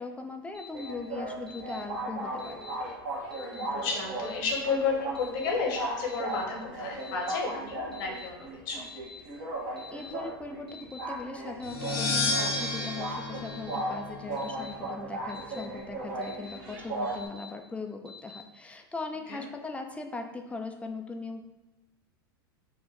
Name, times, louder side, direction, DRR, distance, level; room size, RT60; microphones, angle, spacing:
voice 1, 0.0-2.7 9.9-21.4, left 3 dB, 10° left, 4 dB, 0.6 m, -39 dB
Alarm, 0.5-0.9 1.5-1.8 2.4-2.7 3.3-3.7 4.2-4.6 5.1-5.5 6.1-6.4 7.0-7.4 7.9-8.3 8.8-9.2 9.8-10.1 10.7-11.0 11.6-12.0 12.5-12.9 13.4-13.8 14.4-14.7 15.3-15.6 16.2-16.6 17.1-17.5 18.1-18.4, left 5 dB, 85° right, 1.5 m, -47 dB
sound 1, 0.7-17.3, right 2 dB, 55° right, 1.3 m, -37 dB
voice 2, 3.4-8.8 19.3-19.4, left 4 dB, 60° left, 0 dB, 1.3 m, -32 dB
sound 2, 11.6-14.5, left 2 dB, 85° left, 0.9 m, -31 dB
4.2 x 2.5 x 4.7 m, 1.1 s
hypercardioid pair, 85°, 12 cm